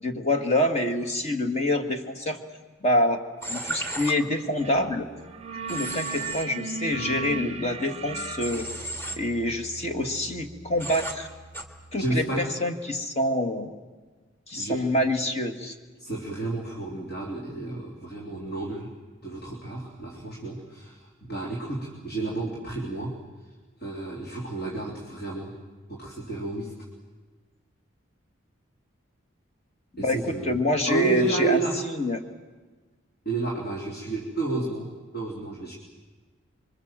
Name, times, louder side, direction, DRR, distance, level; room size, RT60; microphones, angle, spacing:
voice 1, 0.0-2.4 2.8-3.2 3.5-5.1 5.7-8.7 9.2-11.3 11.9-13.7 14.5-15.7 30.0-31.6 32.0-32.2, left 1 dB, 30° left, 6 dB, 1.8 m, -26 dB
Human voice / Train, 3.4-4.1 5.7-6.4 8.4-9.2 10.8-11.1 11.5-11.6, right 1 dB, 10° left, 2.1 m, -34 dB
sound 1, 4.6-4.9 5.2-11.8, right 4 dB, 30° right, 0.8 m, -38 dB
voice 2, 12.0-12.6 14.6-14.9 16.0-18.9 19.2-23.2 23.8-25.5 25.9-26.8 30.0-30.6 30.9-31.8 33.3-35.8, right 3 dB, 50° left, -2 dB, 3.4 m, -31 dB
26.5 x 24.0 x 7.6 m, 1.3 s
head